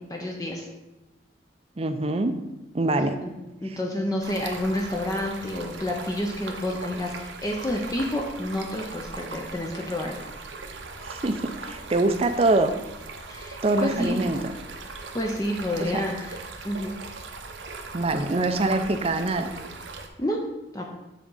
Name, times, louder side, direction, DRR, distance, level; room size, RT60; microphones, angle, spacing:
voice 1, 0.1-0.7 3.2-3.3 3.6-10.2 13.3-14.2 15.1-16.4 16.6-17.0 20.2-20.4 20.7-20.9, left 1 dB, 20° left, 0 dB, 0.5 m, -29 dB
voice 2, 1.8-2.3 2.7-3.2 3.6-3.8 11.0-12.7 13.6-14.6 15.7-16.0 17.9-19.5, right 2 dB, 30° right, 8 dB, 0.5 m, -24 dB
Stream, 4.2-20.1, right 3 dB, 80° right, 0.8 m, -39 dB
7.2 x 3.7 x 5.5 m, 1.0 s
head